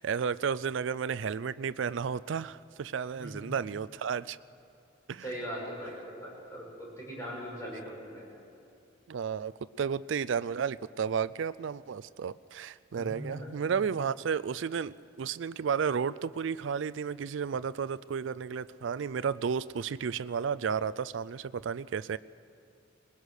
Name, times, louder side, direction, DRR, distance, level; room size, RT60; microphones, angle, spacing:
voice 1, 0.0-4.4 5.1-5.2 9.1-9.5 9.8-22.2, right 6 dB, 65° right, 16 dB, 0.4 m, -32 dB
voice 2, 3.1-3.5 5.2-8.3 12.9-13.5, equal, 15° left, -5 dB, 6.4 m, -40 dB
20.5 x 20.5 x 6.5 m, 2.5 s
head